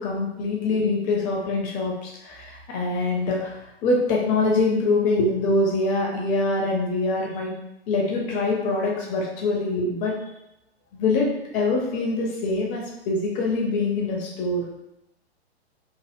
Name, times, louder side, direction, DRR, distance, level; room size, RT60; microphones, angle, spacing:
voice 1, 0.0-7.5 7.9-10.2 10.9-11.3 11.5-14.6, left 2 dB, 25° left, -2 dB, 0.7 m, -24 dB
3.1 x 2.2 x 3.4 m, 0.89 s
figure-of-eight pair, 110°, 32 cm